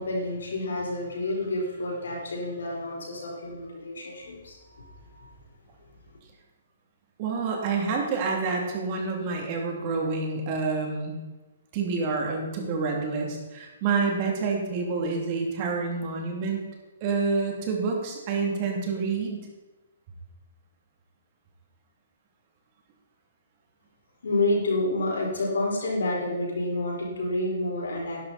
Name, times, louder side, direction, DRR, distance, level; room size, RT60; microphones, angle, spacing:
voice 1, 0.0-5.3 24.2-28.2, left 2 dB, 75° left, -2 dB, 4.6 m, -29 dB
voice 2, 7.2-11.2 11.7-16.6 17.0-19.5, right 4 dB, 40° right, 1 dB, 3.0 m, -28 dB
12.0 x 11.0 x 4.3 m, 1.2 s
hypercardioid pair, 135°, 0 cm